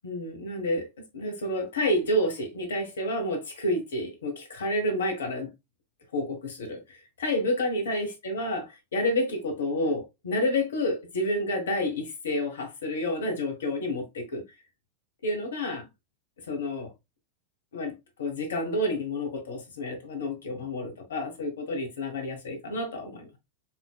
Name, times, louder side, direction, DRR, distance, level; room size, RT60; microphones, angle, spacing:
voice 1, 0.0-0.8 1.1-5.5 6.1-14.4 15.2-15.8 16.5-16.9 17.7-17.9 18.2-23.4, left 1 dB, 65° left, 1.2 m, -29 dB
4.4 x 3.7 x 2.3 m
figure-of-eight pair, 90°, 0 cm